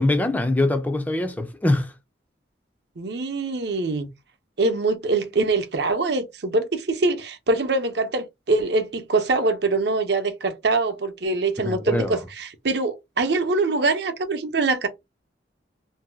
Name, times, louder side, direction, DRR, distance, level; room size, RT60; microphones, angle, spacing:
voice 1, 0.0-1.9 11.6-12.2, left 2 dB, 10° left, 0.3 m, -23 dB
voice 2, 3.0-4.1 4.6-14.9, right 3 dB, 70° right, 0.6 m, -24 dB
2.7 x 2.2 x 3.3 m
head